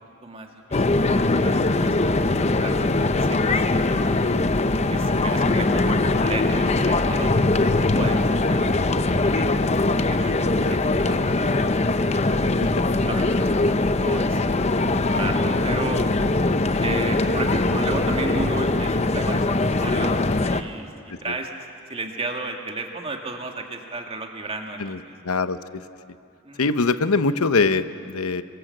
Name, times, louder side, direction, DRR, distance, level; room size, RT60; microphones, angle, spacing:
voice 1, 0.2-4.1 4.9-9.5 9.9-12.2 13.0-16.0 16.8-21.5 21.9-25.1 26.4-26.8, right 2 dB, 25° right, 3 dB, 2.1 m, -34 dB
sound 1, 0.7-20.6, left 2 dB, 30° left, 0.7 m, -21 dB
voice 2, 24.8-25.8 26.6-28.4, left 3 dB, 90° left, 11 dB, 0.9 m, -23 dB
27.0 x 22.5 x 7.9 m, 2.5 s
head